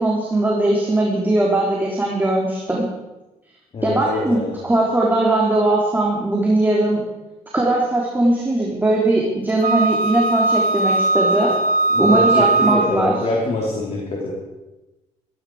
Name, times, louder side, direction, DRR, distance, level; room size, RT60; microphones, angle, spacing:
voice 1, 0.0-2.9 3.8-7.0 7.5-11.5 12.0-13.1, right 2 dB, 15° right, -3 dB, 3.6 m, -19 dB
voice 2, 3.7-4.6 11.9-14.3, left 2 dB, 50° left, -2 dB, 4.0 m, -25 dB
Wind instrument woodwind instrument, 9.6-13.2, right 2 dB, 70° right, 1.5 m, -19 dB
15.5 x 15.0 x 5.0 m, 1.0 s
cardioid pair, 85°, 14 cm